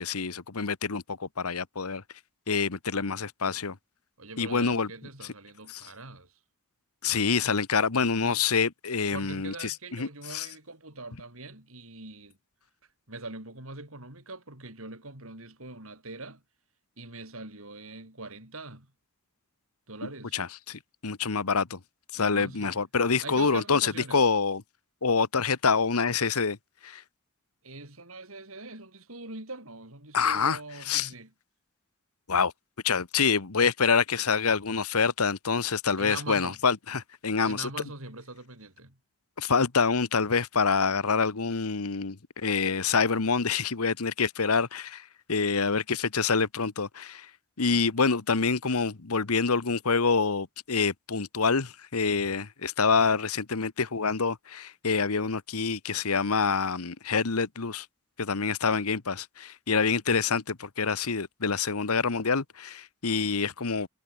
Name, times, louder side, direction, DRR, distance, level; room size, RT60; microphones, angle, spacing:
voice 1, 0.0-2.0 2.5-3.7 4.4-4.9 5.7-5.8 7.0-10.5 20.3-21.8 22.1-24.6 25.0-26.6 26.8-27.0 30.1-30.6 30.9-31.1 32.3-32.5 32.8-37.7 39.4-45.0 45.3-47.3 47.6-57.8 58.2-63.9, left 5 dB, 85° left, 1.2 m, -26 dB
voice 2, 4.2-6.4 8.2-8.4 9.1-12.4 13.1-16.4 17.0-18.9 19.9-20.4 22.1-22.8 23.2-24.3 27.6-31.3 36.0-36.6 37.5-39.0, right 2 dB, 65° right, 6.9 m, -42 dB
head